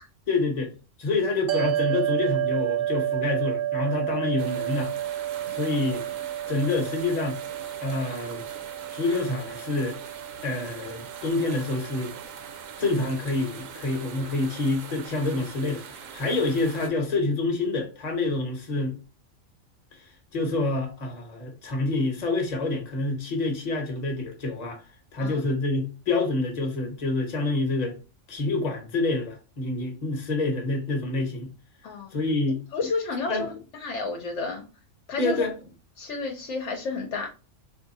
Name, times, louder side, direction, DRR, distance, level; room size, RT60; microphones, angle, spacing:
voice 1, 0.3-0.7 1.0-4.9 5.5-6.0 6.5-7.4 7.8-8.4 8.9-10.0 10.4-12.1 12.8-18.9 20.0-20.1 20.3-24.8 25.1-28.0 28.3-31.5 32.1-32.6 33.3-33.5 35.2-35.5, left 2 dB, 35° left, 1.0 m, -27 dB
sound 1, 1.5-14.0, right 12 dB, 55° right, 0.7 m, -31 dB
sound 2, 4.4-16.9, right 7 dB, 90° right, 1.0 m, -42 dB
voice 2, 31.8-32.2 32.7-34.6 35.1-35.5 36.0-37.3, left 3 dB, 70° left, 1.0 m, -31 dB
3.7 x 2.7 x 2.6 m
omnidirectional pair, 1.3 m